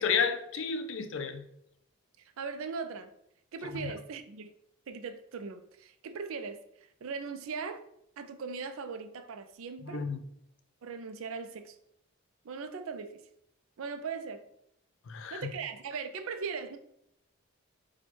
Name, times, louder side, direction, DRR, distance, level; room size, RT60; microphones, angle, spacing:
voice 1, 0.0-1.5 3.7-3.9 9.8-10.2 15.1-15.5, left 6 dB, 60° left, 0.4 m, -31 dB
voice 2, 2.4-3.1 3.5-4.5 4.9-6.6 7.0-7.8 8.2-10.1 10.8-11.8 12.4-13.2 13.8-14.4 15.3-16.8, right 5 dB, 70° right, 0.4 m, -39 dB
4.3 x 2.2 x 4.4 m
head